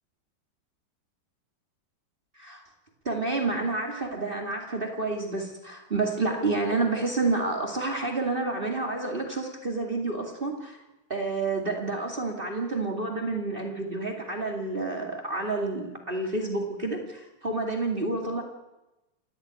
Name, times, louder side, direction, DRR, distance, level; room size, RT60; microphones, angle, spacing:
voice 1, 3.0-10.8 11.1-18.4, right 3 dB, 55° right, 3 dB, 0.6 m, -29 dB
28.0 x 12.0 x 9.5 m, 1.0 s
omnidirectional pair, 5.4 m